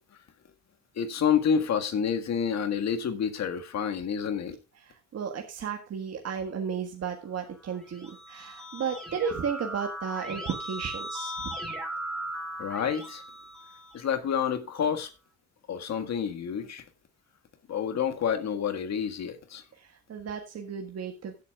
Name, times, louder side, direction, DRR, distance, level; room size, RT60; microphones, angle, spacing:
voice 1, 1.0-4.6 12.6-13.2 13.9-15.1 15.7-16.8 17.7-19.6, left 7 dB, 60° left, 1.8 m, -28 dB
voice 2, 4.7-11.5 19.7-21.4, right 7 dB, 55° right, 1.7 m, -34 dB
Keyboard (musical), 7.7-14.3, right 1 dB, ahead, 4.5 m, -38 dB
16.5 x 8.5 x 2.4 m
cardioid pair, 90°, 30 cm